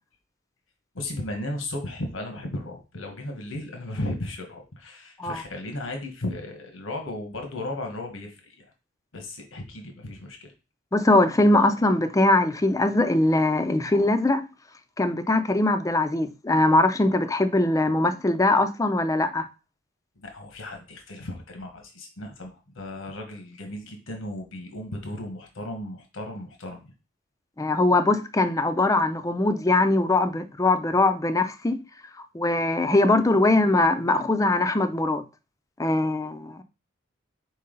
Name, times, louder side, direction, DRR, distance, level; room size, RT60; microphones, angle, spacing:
voice 1, 0.9-8.6 9.1-10.5 20.2-26.9, left 1 dB, 85° left, 1.2 m, -35 dB
voice 2, 10.9-14.4 15.0-19.5 27.6-31.8 32.2-35.2 35.8-36.6, left 2 dB, 15° left, 0.4 m, -21 dB
5.4 x 4.7 x 3.8 m
head